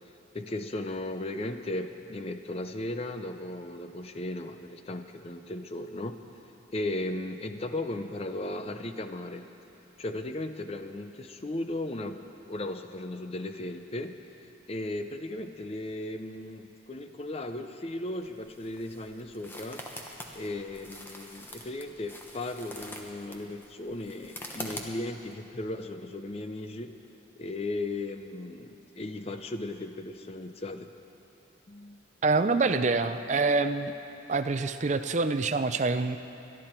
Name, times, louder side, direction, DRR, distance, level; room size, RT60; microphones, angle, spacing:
voice 1, 0.3-6.2 6.7-9.5 10.0-14.2 14.7-19.8 20.3-26.9 27.4-30.9 31.7-32.0, left 2 dB, 30° left, 8 dB, 0.5 m, -36 dB
sound 1, 18.1-25.3, left 1 dB, 10° left, 1.0 m, -44 dB
voice 2, 32.2-33.9 34.3-36.2, right 3 dB, 35° right, 10 dB, 0.5 m, -26 dB
22.0 x 12.5 x 4.4 m, 2.9 s
head